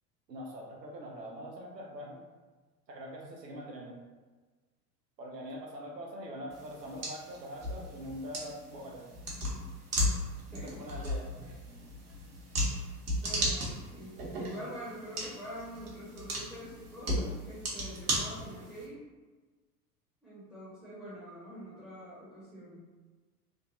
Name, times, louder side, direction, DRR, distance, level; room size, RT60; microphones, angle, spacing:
voice 1, 0.3-2.2 2.9-4.0 5.2-9.1 10.5-11.3, equal, 85° right, -1 dB, 0.6 m, -43 dB
sound 1, 6.5-18.8, equal, 65° right, 1.0 m, -36 dB
voice 2, 10.5-10.8 13.2-19.0 20.2-22.8, equal, ahead, -10 dB, 0.9 m, -45 dB
3.2 x 2.2 x 2.5 m, 1.3 s
figure-of-eight pair, 80°, 48 cm